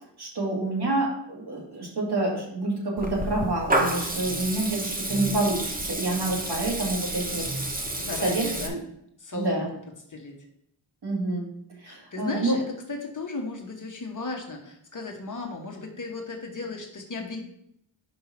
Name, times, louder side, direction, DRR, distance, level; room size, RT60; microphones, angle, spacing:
voice 1, 0.2-7.4 8.2-8.8 9.3-9.7 11.0-11.5 11.8-12.6, right 2 dB, 55° right, -3 dB, 2.4 m, -28 dB
Water tap faucet / Liquid, 3.0-8.7, right 1 dB, 20° right, 0.9 m, -30 dB
voice 2, 8.0-8.8 9.2-9.6 10.1-10.4 11.8-17.4, left 3 dB, 40° left, 1 dB, 1.3 m, -35 dB
5.5 x 5.3 x 5.9 m, 0.75 s
wide cardioid pair, 125°, 47 cm